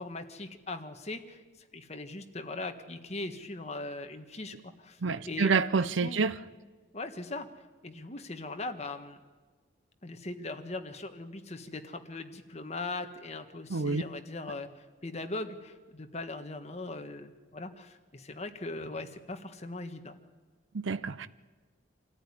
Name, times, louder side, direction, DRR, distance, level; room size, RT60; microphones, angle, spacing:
voice 1, 0.0-1.4 1.7-6.2 6.9-7.5 7.8-9.2 10.0-20.2, left 2 dB, 35° left, 1.6 m, -40 dB
voice 2, 5.0-6.3 13.7-14.0 20.7-21.3, right 4 dB, 80° right, 0.6 m, -28 dB
26.5 x 14.0 x 10.0 m
head